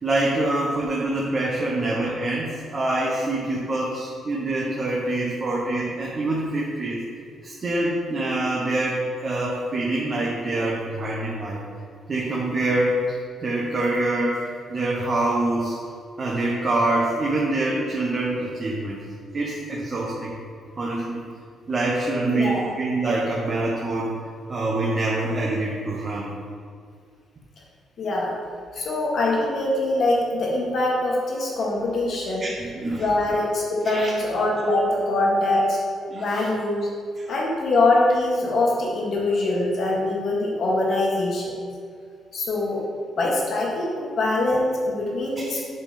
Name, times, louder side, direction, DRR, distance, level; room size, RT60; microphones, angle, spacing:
voice 1, 0.0-7.0 7.4-11.6 12.1-15.8 16.2-19.0 19.3-20.3 20.8-21.2 21.7-24.1 24.5-26.3 32.4-33.0 33.8-34.1 36.1-36.5 37.2-37.3 45.4-45.6, right 2 dB, 35° right, -4 dB, 1.1 m, -25 dB
voice 2, 22.3-22.7 28.0-28.3 28.7-32.5 32.9-35.8 36.1-36.9 37.3-41.5 42.3-42.8 43.2-45.6, left 2 dB, 60° left, -3 dB, 1.8 m, -23 dB
7.9 x 3.7 x 5.2 m, 2.2 s
cardioid pair, 90°, 0 cm